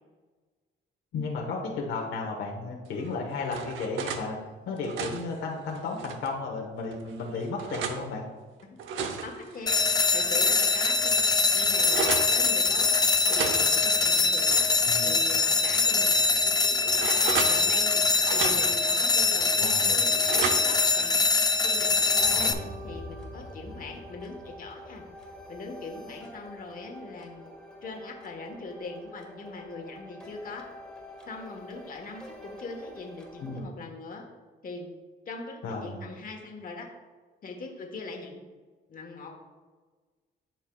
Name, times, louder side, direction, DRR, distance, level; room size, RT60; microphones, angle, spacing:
voice 1, 1.1-4.4 4.6-8.2 14.9-15.1 19.6-20.0 22.3-22.7 33.4-33.7 35.6-36.0, left 3 dB, 80° left, -1 dB, 1.1 m, -34 dB
sound 1, 3.0-4.3 4.7-6.3 6.9-8.0 8.6-10.3 10.7-10.8 11.1-12.3 13.2-15.1 15.4-15.5 16.1-17.9 18.2-18.9 19.4-20.9, right 6 dB, 85° right, 0.7 m, -35 dB
voice 2, 8.9-11.3 11.5-14.7 15.0-16.1 16.4-16.5 16.8-18.1 18.3-21.1 21.6-25.0 25.5-27.5 27.8-30.7 31.2-34.3 34.6-34.9 35.3-36.9 37.4-38.4 38.9-39.3, left 3 dB, 45° left, 2 dB, 1.3 m, -41 dB
sound 2, 9.7-22.5, left 4 dB, 20° left, 0.5 m, -23 dB
sound 3, 21.4-33.6, equal, 5° left, 1.5 m, -45 dB
12.0 x 4.6 x 2.3 m, 1.4 s
cardioid pair, 90°, 20 cm